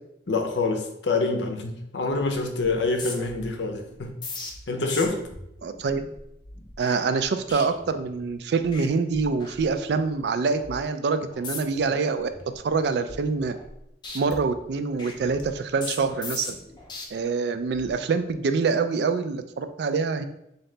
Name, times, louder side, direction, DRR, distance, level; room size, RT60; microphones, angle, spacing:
voice 1, 0.3-4.1 4.7-5.2, left 3 dB, 80° left, 4 dB, 0.6 m, -26 dB
sound 1, 2.9-8.3 8.6-8.9 9.1-10.1 10.5-10.8 11.3-11.9 12.3-13.8 14.0-17.0 17.6-17.9, left 3 dB, 25° left, 0.5 m, -40 dB
voice 2, 5.6-6.1 6.8-12.3 12.6-13.5 14.1-16.5 17.1-20.2, right 4 dB, 65° right, 9 dB, 0.3 m, -25 dB
3.9 x 2.8 x 3.3 m, 0.80 s
head